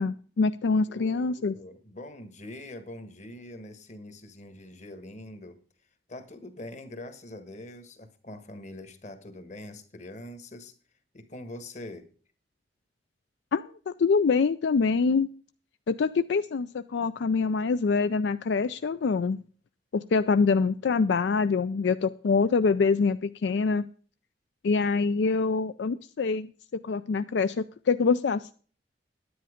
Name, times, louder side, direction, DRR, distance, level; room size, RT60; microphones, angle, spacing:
voice 1, 0.0-1.5 13.5-15.3 15.9-19.4 19.9-23.8 24.6-26.5 26.8-28.5, left 4 dB, 75° left, 13 dB, 0.4 m, -25 dB
voice 2, 0.9-5.6 6.1-10.7 11.1-12.1, left 1 dB, 40° left, 10 dB, 1.5 m, -43 dB
10.5 x 9.3 x 5.0 m, 0.41 s
head